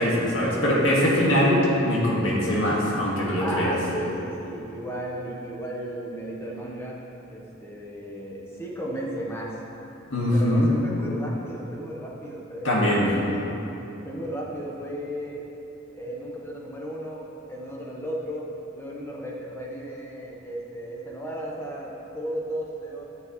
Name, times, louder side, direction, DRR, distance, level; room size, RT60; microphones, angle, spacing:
voice 1, 0.0-3.8 10.1-10.7 12.6-13.1, equal, 70° left, -5 dB, 2.0 m, -22 dB
voice 2, 3.4-7.0 7.3-9.6 10.3-13.6 14.0-15.4 15.9-18.5 18.7-23.0, right 1 dB, 10° left, -3 dB, 1.1 m, -34 dB
13.0 x 6.9 x 3.2 m, 2.9 s
head